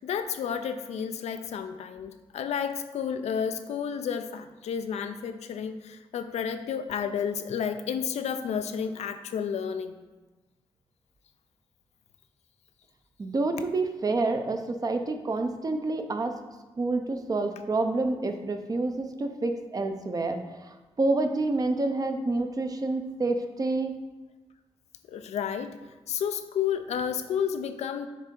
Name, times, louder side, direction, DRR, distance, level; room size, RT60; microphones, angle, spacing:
voice 1, 0.0-10.0 25.1-25.8 26.1-28.1, left 7 dB, 85° left, 8 dB, 0.4 m, -31 dB
voice 2, 13.2-16.3 16.8-24.0 27.5-27.6, right 2 dB, 35° right, 6 dB, 0.6 m, -28 dB
7.4 x 2.7 x 5.2 m, 1.2 s
cardioid pair, 95°, 11 cm